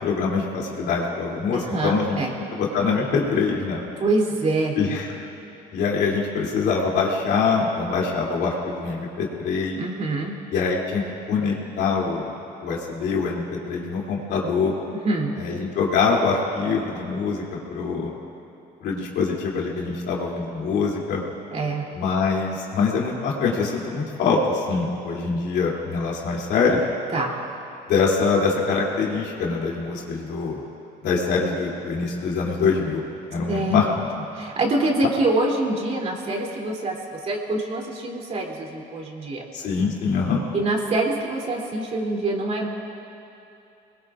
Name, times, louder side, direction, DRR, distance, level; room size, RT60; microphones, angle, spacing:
voice 1, 0.0-2.2 2.5-3.8 4.8-5.1 5.7-9.8 10.5-11.0 11.3-12.3 12.6-14.7 15.4-18.1 18.8-21.2 21.9-26.8 27.9-30.6 31.0-33.0 33.3-34.1 39.5-40.4, left 5 dB, 80° left, -3 dB, 2.9 m, -24 dB
voice 2, 1.5-2.3 4.0-4.8 9.8-10.3 14.9-15.3 21.5-21.9 27.1-27.3 33.5-34.0 34.3-39.5 40.5-42.7, right 2 dB, 40° right, -1 dB, 3.0 m, -25 dB
25.0 x 21.0 x 2.5 m, 2.8 s
cardioid pair, 110°, 17 cm